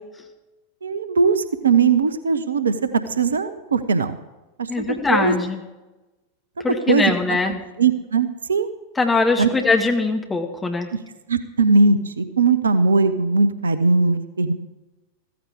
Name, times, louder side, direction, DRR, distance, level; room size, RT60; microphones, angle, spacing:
voice 1, 0.8-4.2 4.6-5.3 6.9-7.0 7.8-8.7 9.4-9.5 11.3-14.5, right 4 dB, 70° right, 13 dB, 0.8 m, -19 dB
voice 2, 4.7-5.6 6.6-7.6 9.0-10.9, left 3 dB, 15° left, 3 dB, 1.9 m, -21 dB
15.0 x 14.5 x 3.6 m, 1.1 s
figure-of-eight pair, 90°, 0 cm